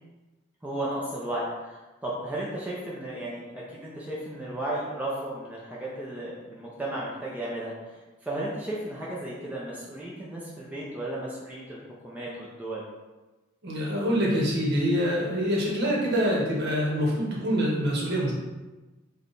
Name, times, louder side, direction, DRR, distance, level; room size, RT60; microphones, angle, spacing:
voice 1, 0.6-12.8, right 1 dB, 10° right, -6 dB, 0.5 m, -34 dB
voice 2, 13.6-18.3, equal, 55° right, -4 dB, 1.0 m, -25 dB
3.3 x 2.3 x 4.0 m, 1.1 s
head